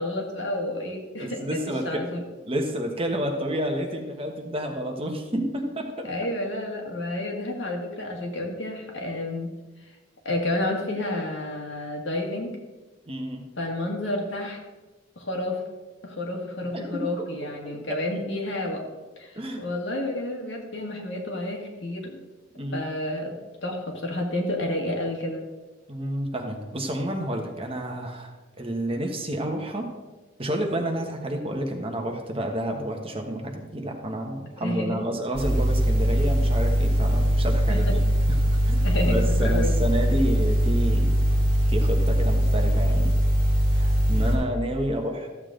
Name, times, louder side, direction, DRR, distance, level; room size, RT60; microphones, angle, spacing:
voice 1, 0.0-1.4 1.8-2.2 6.1-9.5 10.3-12.5 13.6-14.6 15.2-15.6 16.0-18.8 19.2-22.2 22.7-23.4 23.6-25.4 34.6-35.0 37.7-37.9 38.8-39.7, left 1 dB, 70° left, 0 dB, 2.0 m, -30 dB
voice 2, 1.2-2.0 2.4-6.1 13.1-13.4 16.7-17.3 17.6-18.2 19.3-19.7 22.5-22.8 25.9-28.3 28.6-29.9 30.4-38.0 38.3-41.2 41.7-43.1 43.7-45.3, right 1 dB, 30° right, 2 dB, 1.2 m, -30 dB
sound 1, 35.3-44.4, equal, 45° left, 3.1 m, -21 dB
14.0 x 7.3 x 3.8 m, 1.2 s
head